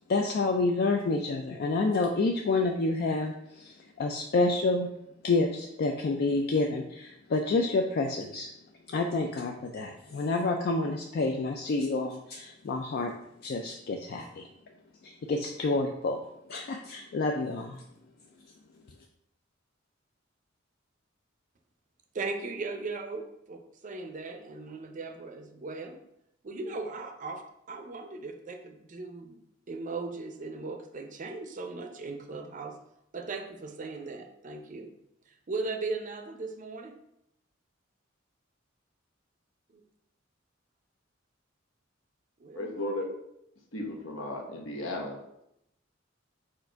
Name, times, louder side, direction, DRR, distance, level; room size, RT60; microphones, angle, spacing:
voice 1, 0.1-4.9 5.2-8.5 8.9-13.1 13.4-14.5 15.0-16.2 16.5-17.8, left 3 dB, 50° left, 3 dB, 0.4 m, -28 dB
voice 2, 22.1-26.0 26.4-27.4 27.7-32.8 33.1-34.9 35.3-37.0 42.4-42.8, right 3 dB, 40° right, 5 dB, 0.5 m, -38 dB
voice 3, 42.5-43.1 43.7-45.2, left 1 dB, 80° left, 0 dB, 1.0 m, -35 dB
4.5 x 2.5 x 4.4 m, 0.79 s
head